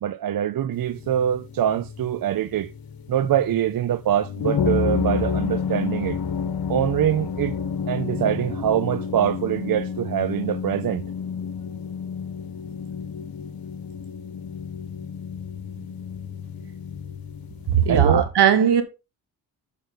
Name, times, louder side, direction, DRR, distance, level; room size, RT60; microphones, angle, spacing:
voice 1, 0.0-2.7 3.1-6.2 6.7-7.5 7.9-11.0 17.9-18.2, right 11 dB, 55° right, 0.6 m, -24 dB
sound 1, 0.7-18.1, left 6 dB, 60° left, 1.2 m, -30 dB
voice 2, 17.7-18.8, right 8 dB, 75° right, 1.9 m, -18 dB
8.8 x 5.8 x 3.7 m
supercardioid pair, 55°, 41 cm